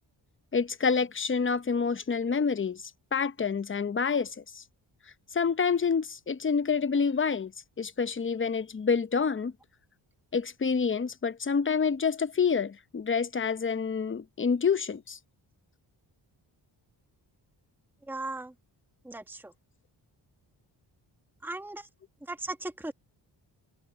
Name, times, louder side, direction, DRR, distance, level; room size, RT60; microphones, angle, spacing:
voice 1, 0.5-4.6 5.3-7.5 7.8-9.5 10.3-15.2, left 5 dB, 25° left, 0.8 m, -28 dB
voice 2, 18.1-18.5 19.0-19.5 21.4-21.9 22.3-22.9, right 2 dB, 5° right, 1.5 m, -37 dB
cardioid pair, 70°, 47 cm